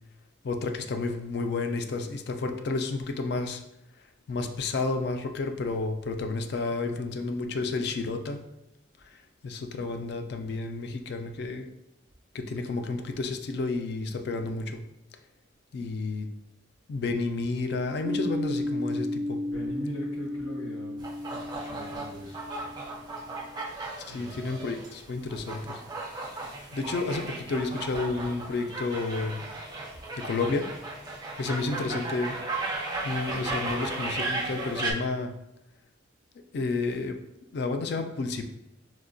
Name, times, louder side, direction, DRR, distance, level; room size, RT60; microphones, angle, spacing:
voice 1, 0.4-3.6 4.3-8.4 9.0-11.7 12.3-14.8 15.7-16.3 16.9-19.4 24.1-25.8 26.1-26.2 26.7-29.4 30.2-30.7 31.4-32.4 33.0-35.3 36.5-37.2 37.5-38.4, left 3 dB, 55° left, 6 dB, 0.3 m, -31 dB
sound 1, 18.0-23.5, left 1 dB, 85° right, 0.4 m, -33 dB
voice 2, 19.5-21.0 21.3-22.4 24.0-24.4, equal, 85° left, -1 dB, 0.9 m, -40 dB
sound 2, 21.0-34.9, right 2 dB, 20° right, 0.4 m, -36 dB
4.6 x 2.1 x 2.5 m, 0.86 s
head